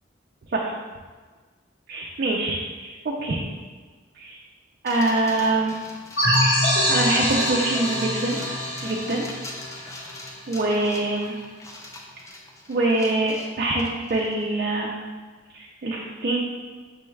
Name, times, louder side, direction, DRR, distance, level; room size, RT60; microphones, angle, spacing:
voice 1, 1.9-3.5 4.2-4.4 4.8-5.8 6.6-8.4 8.8-9.3 9.8-10.0 10.5-11.4 12.7-14.9 15.5-16.4, right 2 dB, 50° right, -2 dB, 0.4 m, -25 dB
sound 1, 4.9-14.4, left 2 dB, 15° left, 0.4 m, -41 dB
sound 2, 6.2-10.6, equal, 60° left, 1.5 m, -24 dB
6.0 x 2.3 x 3.2 m, 1.4 s
head